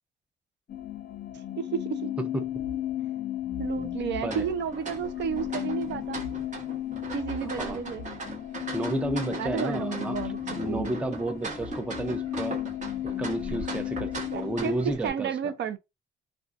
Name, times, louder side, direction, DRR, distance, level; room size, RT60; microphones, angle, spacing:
sound 1, 0.7-15.0, left 11 dB, 50° left, 0.5 m, -34 dB
voice 1, 1.6-2.2 3.6-6.2 7.1-8.0 9.4-10.9 14.3-14.7 15.0-15.8, right 7 dB, 65° right, 0.5 m, -32 dB
sound 2, 4.3-15.1, right 3 dB, 35° right, 1.0 m, -40 dB
voice 2, 8.7-12.6 13.2-15.5, right 2 dB, 5° right, 0.3 m, -32 dB
2.5 x 2.3 x 2.4 m
cardioid pair, 90°, 20 cm